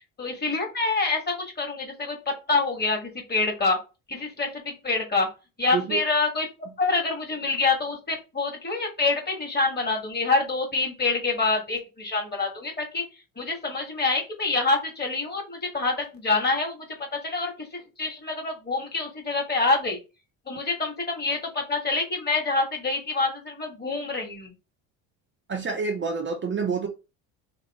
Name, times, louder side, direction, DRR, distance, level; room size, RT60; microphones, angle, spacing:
voice 1, 0.2-3.8 4.1-5.3 5.6-6.5 6.8-13.0 13.4-20.0 20.5-24.5, left 3 dB, 25° left, 1.5 m, -26 dB
voice 2, 25.5-26.9, right 5 dB, 30° right, 0.6 m, -28 dB
3.0 x 2.6 x 4.0 m
supercardioid pair, 95°, 41 cm